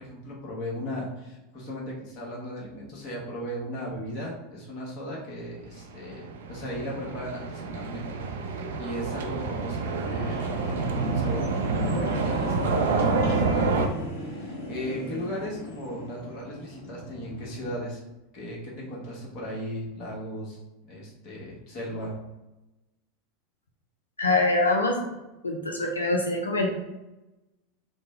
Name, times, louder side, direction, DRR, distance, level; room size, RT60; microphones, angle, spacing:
voice 1, 0.0-12.9 13.2-18.0 18.3-20.6 20.9-22.2, equal, 50° left, -3 dB, 1.1 m, -37 dB
sound 1, 6.0-13.9, right 4 dB, 70° right, 0.3 m, -28 dB
sound 2, 8.1-17.8, equal, 65° left, 0.9 m, -37 dB
voice 2, 24.2-25.0 25.4-26.8, left 2 dB, 85° left, 1 dB, 0.4 m, -24 dB
3.2 x 2.1 x 3.2 m, 1.0 s
figure-of-eight pair, 85°, 0 cm